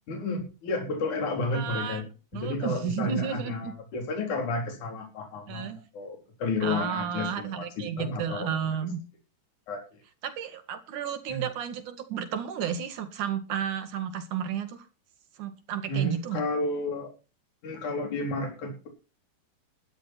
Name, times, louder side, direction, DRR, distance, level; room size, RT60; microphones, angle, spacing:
voice 1, 0.1-2.1 2.3-8.8 9.7-9.8 11.3-11.5 15.9-17.1 17.6-18.9, left 2 dB, 60° left, 3 dB, 5.0 m, -32 dB
voice 2, 1.5-2.0 2.3-3.7 5.5-5.8 6.6-9.0 10.2-14.9 15.4-16.4, right 8 dB, 65° right, 8 dB, 3.3 m, -32 dB
13.0 x 12.5 x 4.4 m, 0.33 s
omnidirectional pair, 4.0 m